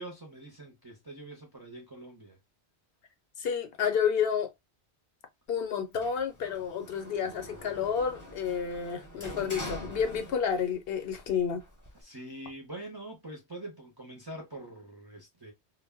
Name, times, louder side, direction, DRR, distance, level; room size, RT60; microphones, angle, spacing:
voice 1, 0.0-2.4 11.9-15.5, right 1 dB, 30° right, 0.5 m, -44 dB
voice 2, 3.4-4.5 5.5-11.6, left 7 dB, 65° left, 0.7 m, -30 dB
Sliding door, 5.9-10.8 11.1-12.0, left 1 dB, 20° left, 0.6 m, -44 dB
2.1 x 2.0 x 3.3 m
omnidirectional pair, 1.1 m